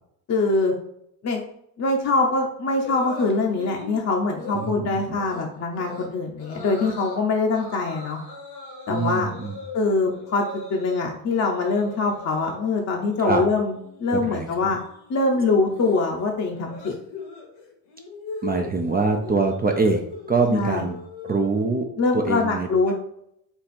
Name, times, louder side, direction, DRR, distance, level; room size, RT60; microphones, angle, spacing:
voice 1, 0.3-0.7 1.2-1.4 1.8-8.2 8.9-9.3 9.7-14.8 15.1-16.9 20.5-20.8 22.0-22.9, left 3 dB, 35° left, 0 dB, 0.8 m, -23 dB
sound 1, 2.8-3.9 4.3-4.7 5.2-5.4 5.8-6.1 6.4-7.2 7.5-11.0 11.3-12.6 12.9-13.3 13.6-21.8, left 4 dB, 75° left, 1.6 m, -39 dB
voice 2, 4.5-5.2 8.9-9.6 13.2-13.4 14.1-14.7 18.4-20.0 20.3-21.0 21.2-21.9 22.1-22.9, right 4 dB, 20° right, 3 dB, 0.5 m, -24 dB
4.5 x 2.4 x 4.2 m, 0.75 s
hypercardioid pair, 60°, 47 cm